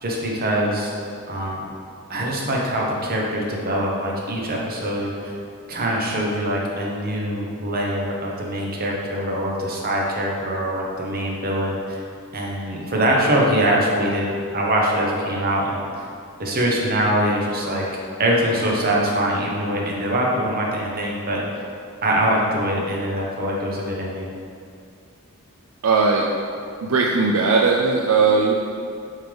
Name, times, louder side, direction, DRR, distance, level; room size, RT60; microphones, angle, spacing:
voice 1, 0.0-0.9 1.3-1.6 2.1-5.3 5.7-12.0 12.3-16.1 16.4-21.4 22.0-24.3, right 1 dB, 45° right, -2 dB, 1.0 m, -23 dB
voice 2, 25.8-26.2 26.8-28.5, right 4 dB, 70° right, -1 dB, 0.4 m, -18 dB
7.9 x 3.8 x 3.4 m, 2.4 s
head